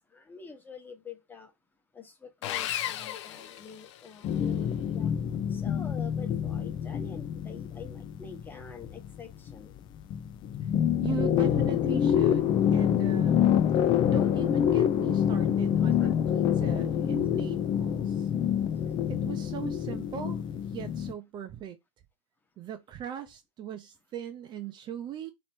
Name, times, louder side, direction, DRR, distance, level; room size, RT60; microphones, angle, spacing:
voice 1, 0.1-1.5 1.9-5.1 5.5-9.7 16.0-16.1, left 5 dB, 10° left, 1.1 m, -46 dB
Sawing, 2.4-4.3, left 11 dB, 60° left, 0.7 m, -35 dB
sound 1, 4.2-9.8 10.1-21.1, left 9 dB, 30° left, 0.4 m, -26 dB
voice 2, 11.0-13.4 14.0-18.3 19.1-20.4 20.7-21.8 22.6-25.3, right 9 dB, 30° right, 0.5 m, -39 dB
3.0 x 3.0 x 4.3 m
hypercardioid pair, 115°, 17 cm